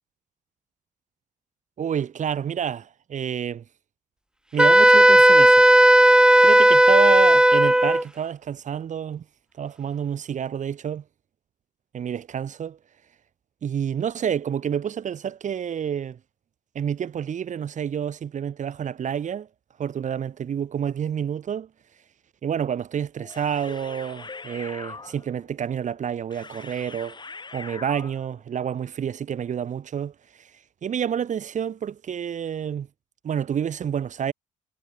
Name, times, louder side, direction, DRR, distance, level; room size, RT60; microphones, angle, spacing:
voice 1, 1.8-3.6 4.5-5.6 6.4-9.2 9.6-11.0 11.9-12.8 13.6-16.2 16.7-19.5 19.8-21.7 22.4-27.2 27.5-30.1 30.4-30.5 30.8-32.9 33.2-34.3, right 8 dB, 60° right, 2.9 m, -29 dB
Wind instrument woodwind instrument, 4.6-8.0, right 1 dB, 5° right, 0.8 m, -14 dB
sound 1, 23.2-28.4, left 4 dB, 30° left, 5.9 m, -42 dB
supercardioid pair, 65°, 14 cm